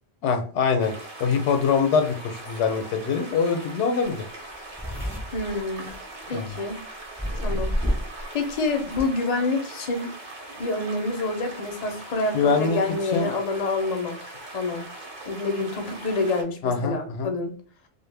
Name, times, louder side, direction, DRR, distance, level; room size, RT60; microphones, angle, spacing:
voice 1, 0.2-0.9 1.2-4.2 6.3-6.5 12.3-12.8 13.1-13.3 16.6-17.3, left 5 dB, 80° left, 5 dB, 0.9 m, -23 dB
sound 1, 0.8-16.4, right 2 dB, 50° right, 0.8 m, -41 dB
sound 2, 4.0-4.1 4.3-6.7 7.2-8.2 8.5-9.0, equal, 5° right, 0.5 m, -28 dB
voice 2, 5.3-5.9 6.3-6.8 7.4-7.8 8.3-10.1 10.6-14.2 14.5-14.8 15.2-17.5, left 3 dB, 50° left, 4 dB, 0.5 m, -27 dB
2.2 x 2.0 x 3.2 m, 0.41 s
omnidirectional pair, 1.2 m